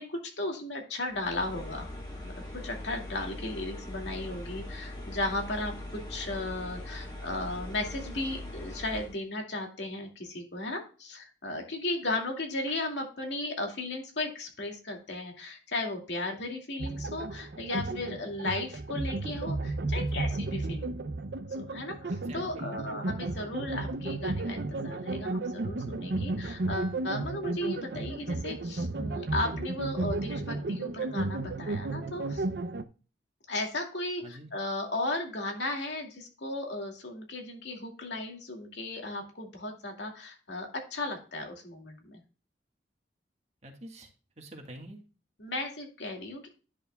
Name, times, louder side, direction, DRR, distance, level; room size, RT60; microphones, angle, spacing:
voice 1, 0.0-1.9 2.2-5.7 6.1-20.9 21.6-32.4 33.5-34.2 34.5-42.2 45.4-46.5, left 2 dB, 80° left, 2 dB, 2.4 m, -35 dB
sound 1, 1.1-9.2, left 1 dB, 25° left, 2.0 m, -41 dB
sound 2, 16.8-32.8, right 2 dB, 65° right, 0.6 m, -33 dB
voice 2, 19.9-20.3 22.1-22.7 34.2-34.5 43.6-45.0, right 1 dB, 35° right, 3 dB, 1.7 m, -47 dB
10.0 x 6.7 x 2.3 m, 0.35 s
head